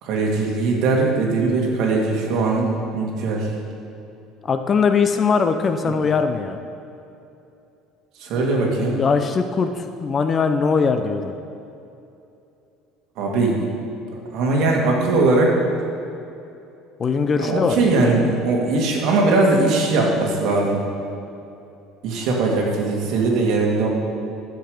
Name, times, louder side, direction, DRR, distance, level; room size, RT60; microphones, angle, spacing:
voice 1, 0.0-3.5 8.2-9.0 13.2-13.6 14.3-15.5 17.4-20.8 22.0-23.9, right 3 dB, 60° right, -1 dB, 2.3 m, -20 dB
voice 2, 4.4-6.6 8.9-11.3 17.0-17.9 22.3-22.4, left 5 dB, 25° left, 8 dB, 0.5 m, -21 dB
12.0 x 8.1 x 5.0 m, 2.8 s
cardioid pair, 145°, 0 cm